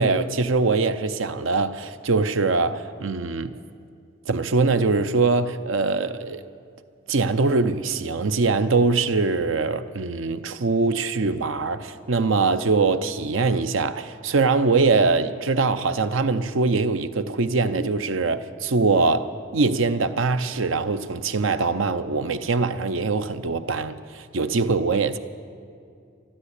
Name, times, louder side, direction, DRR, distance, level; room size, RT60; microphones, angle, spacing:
voice 1, 0.0-3.6 4.3-6.4 7.1-25.2, right 3 dB, 85° right, 0.7 m, -23 dB
12.5 x 12.5 x 8.2 m
head